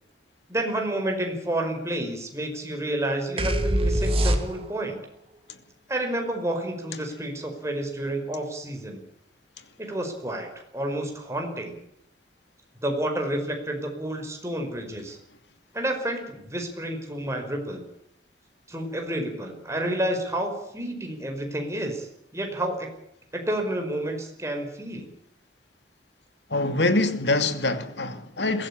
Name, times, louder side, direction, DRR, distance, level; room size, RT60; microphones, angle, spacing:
voice 1, 0.5-5.0 5.9-9.0 9.8-10.5 10.7-11.7 12.8-15.2 15.7-17.8 18.7-22.1 22.3-22.9 23.3-25.1, right 1 dB, 15° right, 5.2 m, -30 dB
sound 1, 3.4-4.9, right 1 dB, 35° right, 2.4 m, -23 dB
voice 2, 26.5-28.7, left 2 dB, 80° left, 2.7 m, -24 dB
22.5 x 16.0 x 8.8 m
head